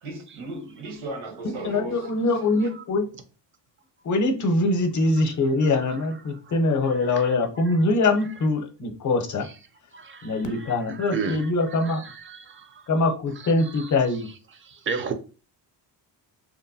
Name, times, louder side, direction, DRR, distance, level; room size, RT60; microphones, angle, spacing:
voice 1, 0.0-2.7, right 2 dB, 75° right, 1.2 m, -37 dB
voice 2, 1.4-3.0 4.0-9.5 10.2-12.1 12.9-14.3, left 2 dB, 40° left, 0.7 m, -23 dB
voice 3, 6.8-7.4 7.7-7.8 9.4-9.5 9.9-12.9 13.4-13.9 14.6-15.1, right 5 dB, 25° right, 0.4 m, -35 dB
2.9 x 2.2 x 2.6 m
cardioid pair, 95°, 48 cm